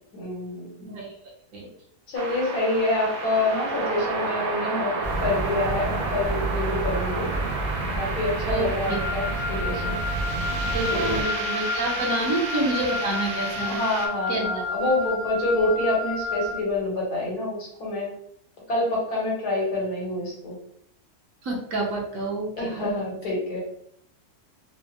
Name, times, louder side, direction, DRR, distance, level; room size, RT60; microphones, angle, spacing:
voice 1, 0.1-0.9 2.1-7.3 8.0-10.0 10.9-11.2 12.2-12.3 13.7-18.1 18.7-20.6 22.5-23.6, left 2 dB, 80° left, -3 dB, 1.7 m, -27 dB
voice 2, 0.8-1.7 8.5-9.0 10.7-13.9 14.3-14.5 21.4-22.9, right 2 dB, 65° right, -2 dB, 1.2 m, -28 dB
sound 1, 2.2-14.1, right 3 dB, 90° right, 1.3 m, -32 dB
sound 2, 5.0-11.2, right 2 dB, 45° right, 0.6 m, -30 dB
Wind instrument woodwind instrument, 8.9-16.6, left 3 dB, 65° left, 1.3 m, -31 dB
4.3 x 2.0 x 2.9 m, 0.72 s
omnidirectional pair, 1.6 m